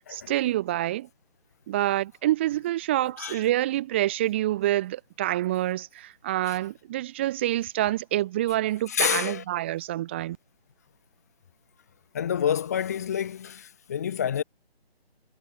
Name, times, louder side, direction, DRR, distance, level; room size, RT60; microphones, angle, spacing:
voice 1, 0.1-1.1 1.7-10.4, right 14 dB, 10° right, 4.4 m, -27 dB
voice 2, 8.9-9.4 12.1-14.4, left 9 dB, 15° left, 3.6 m, -28 dB
figure-of-eight pair, 175°, 32 cm